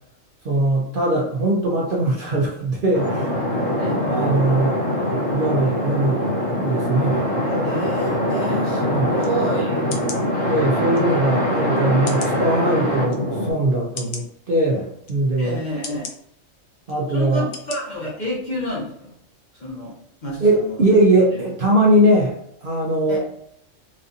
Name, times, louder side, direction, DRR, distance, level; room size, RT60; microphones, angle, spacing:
voice 1, 0.4-3.3 4.1-4.8 5.3-7.3 8.8-9.1 10.5-15.6 16.9-17.5 20.4-22.3 22.6-23.2, right 1 dB, 50° right, -3 dB, 0.8 m, -20 dB
sound 1, 2.9-13.5, equal, 90° left, 1.6 m, -23 dB
voice 2, 7.4-10.1 15.4-16.1 17.1-19.1 19.6-20.8 23.1-23.2, left 1 dB, 35° left, -4 dB, 1.1 m, -29 dB
sound 2, 9.2-9.3 9.9-10.2 10.9-11.0 12.0-12.4 13.1-13.2 13.9-14.2 15.0-15.2 15.8-16.1 16.9-17.0 17.5-17.8 18.2-18.3, left 5 dB, 60° left, 0.7 m, -34 dB
4.2 x 2.5 x 2.7 m, 0.70 s
omnidirectional pair, 1.4 m